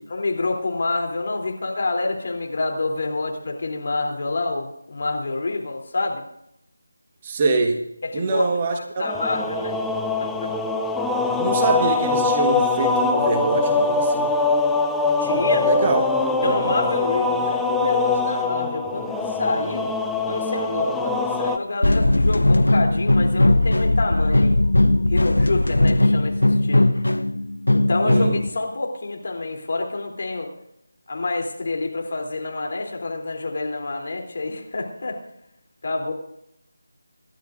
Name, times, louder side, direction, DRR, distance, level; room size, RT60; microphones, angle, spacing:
voice 1, 0.1-6.2 8.0-9.8 10.2-10.5 15.2-15.7 16.4-19.9 20.2-24.6 25.1-26.9 27.7-30.5 31.1-35.2 35.8-36.1, left 3 dB, 50° left, 1 dB, 3.2 m, -27 dB
voice 2, 7.2-7.8 8.1-9.0 11.4-14.3 15.6-16.2 28.0-28.4, right 3 dB, 25° right, 3 dB, 1.4 m, -24 dB
sound 1, 9.0-21.6, left 3 dB, 5° left, 0.5 m, -23 dB
sound 2, 21.8-28.5, left 1 dB, 85° left, 0.7 m, -18 dB
26.5 x 11.5 x 2.6 m, 0.77 s
figure-of-eight pair, 165°, 0 cm